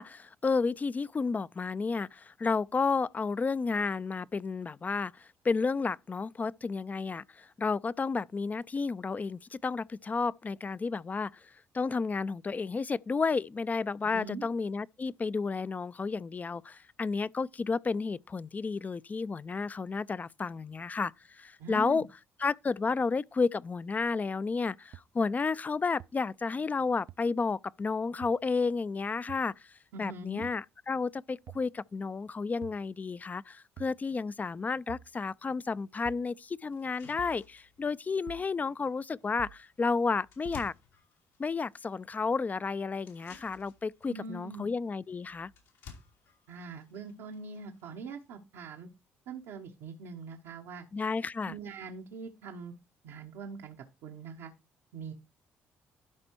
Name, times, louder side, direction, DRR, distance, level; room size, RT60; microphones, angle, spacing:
voice 1, 0.0-22.1 22.4-29.7 30.0-40.7 41.4-45.5 50.9-51.5, left 4 dB, 30° left, 0.4 m, -32 dB
voice 2, 14.1-14.4 21.6-22.0 29.9-30.4 44.1-44.7 46.5-48.9 49.3-50.9 51.4-52.7 53.0-53.8 54.0-54.5 54.9-55.1, right 5 dB, 80° right, 1.0 m, -43 dB
sound 1, 24.9-25.0 26.0-26.1 27.1-27.2 28.2-28.4 29.3-29.5 30.4-30.6 31.5-31.7 32.6-32.8 33.8-34.0 34.9-35.1 36.1-36.3 37.2-37.4 38.3-38.5 39.4-39.6 40.5-40.7, right 13 dB, 65° right, 0.4 m, -47 dB
sound 2, 35.7-35.8 36.2-36.3 36.7-48.4, left 5 dB, 85° left, 2.8 m, -56 dB
12.0 x 4.3 x 4.6 m
supercardioid pair, 60°, 5 cm